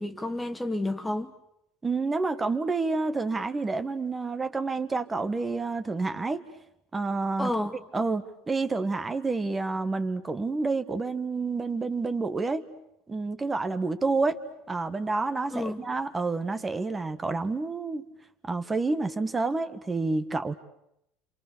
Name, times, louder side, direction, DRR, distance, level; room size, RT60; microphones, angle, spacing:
voice 1, 0.0-1.3 7.4-7.8 15.5-15.8, left 1 dB, 10° left, 1.1 m, -30 dB
voice 2, 1.8-6.4 6.9-7.5 7.9-12.6 13.1-14.4 14.7-18.1 18.4-20.5, right 3 dB, 15° right, 1.5 m, -29 dB
28.5 x 27.0 x 6.9 m
cardioid pair, 135°, 0 cm